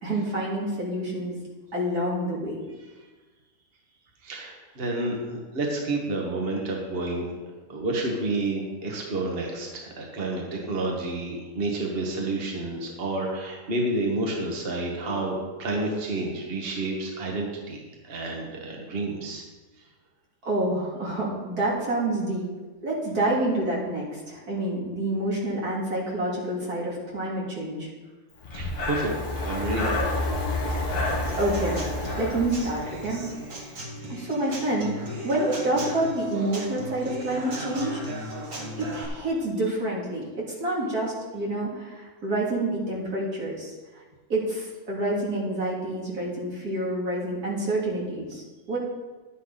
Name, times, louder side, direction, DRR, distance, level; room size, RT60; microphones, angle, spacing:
voice 1, 0.0-1.4 1.7-2.6 20.4-22.5 22.8-27.9 31.4-31.8 32.2-33.2 34.1-38.0 38.8-40.3 40.6-43.7 44.3-48.8, right 1 dB, 85° right, -5 dB, 3.2 m, -28 dB
voice 2, 4.2-7.2 7.7-19.4 28.5-29.1 29.4-29.9, right 2 dB, 40° right, -1 dB, 1.7 m, -30 dB
Breathing, 28.4-33.4, left 2 dB, 85° left, 1.9 m, -29 dB
Human voice / Acoustic guitar / Drum, 31.1-39.0, equal, 60° right, 2.2 m, -37 dB
11.5 x 9.6 x 4.1 m, 1.3 s
omnidirectional pair, 1.6 m